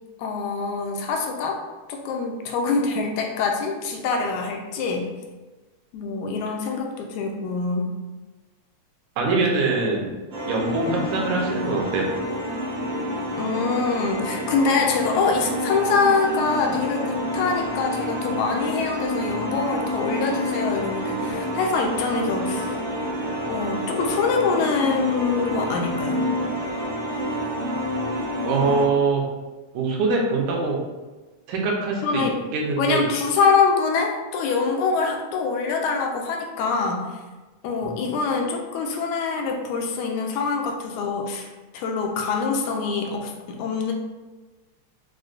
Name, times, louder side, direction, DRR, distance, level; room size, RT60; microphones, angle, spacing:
voice 1, 0.2-1.6 1.9-5.1 5.9-7.9 13.4-22.8 23.5-26.2 32.0-32.4 32.8-37.1 37.6-43.9, left 4 dB, 80° left, 2 dB, 1.9 m, -24 dB
voice 2, 9.2-10.2 10.5-12.1 28.5-29.2 29.7-30.8 31.5-32.2 32.5-33.1 37.8-37.9, right 3 dB, 80° right, -1 dB, 2.1 m, -23 dB
sound 1, 10.3-28.9, equal, 65° right, 1.1 m, -28 dB
6.1 x 2.1 x 2.5 m, 1.2 s
omnidirectional pair, 3.3 m